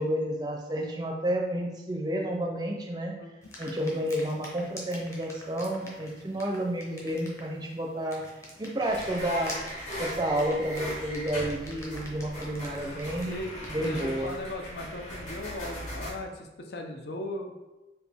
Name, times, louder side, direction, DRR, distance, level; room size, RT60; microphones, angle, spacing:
voice 1, 0.0-3.1 3.6-8.2 8.6-9.6 10.0-13.3 13.7-14.3, right 1 dB, 25° right, 1 dB, 0.5 m, -30 dB
voice 2, 3.2-3.5 13.2-17.5, left 1 dB, 65° left, 3 dB, 0.5 m, -38 dB
sound 1, 3.4-14.5, left 1 dB, 15° left, 0.7 m, -47 dB
sound 2, 8.8-16.1, equal, 45° left, 1.2 m, -39 dB
4.2 x 2.6 x 3.4 m, 1.1 s
head